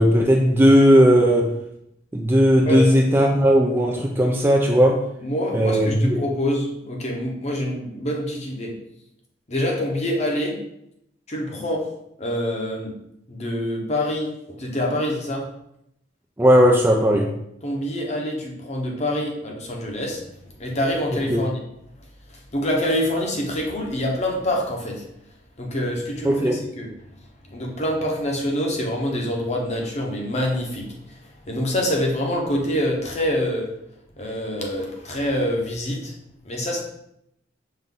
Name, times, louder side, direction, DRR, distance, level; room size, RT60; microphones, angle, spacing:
voice 1, 0.0-1.6 2.1-5.0 5.5-6.2 16.4-17.3 21.3-21.4 26.2-26.6, equal, 10° right, 1 dB, 0.4 m, -17 dB
voice 2, 5.2-8.7 9.5-10.6 11.3-11.9 12.2-12.9 13.3-15.5 17.6-21.6 22.0-25.1 25.6-26.5 26.8-26.9 27.4-33.7 34.2-36.1 36.4-36.8, left 1 dB, 35° left, 0 dB, 0.9 m, -26 dB
5.6 x 2.6 x 3.7 m, 0.78 s
head